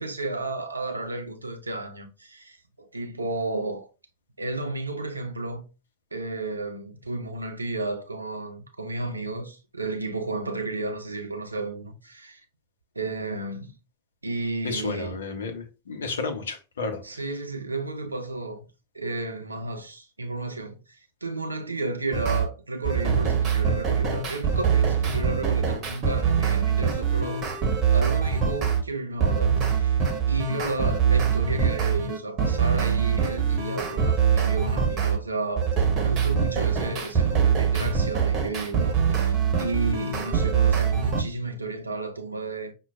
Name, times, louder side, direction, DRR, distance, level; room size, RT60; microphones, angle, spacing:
voice 1, 0.0-3.9 4.4-5.6 6.1-12.4 13.0-13.7 14.2-15.1 17.0-18.7 18.9-27.4 27.9-35.7 36.0-42.7, right 2 dB, 80° right, 0.6 m, -32 dB
voice 2, 14.6-17.0, left 4 dB, 65° left, 0.8 m, -32 dB
sound 1, 22.1-22.5 22.8-28.8 29.2-35.2 35.6-41.2, right 7 dB, 30° right, 1.0 m, -23 dB
5.9 x 2.3 x 2.3 m
figure-of-eight pair, 90°, 0 cm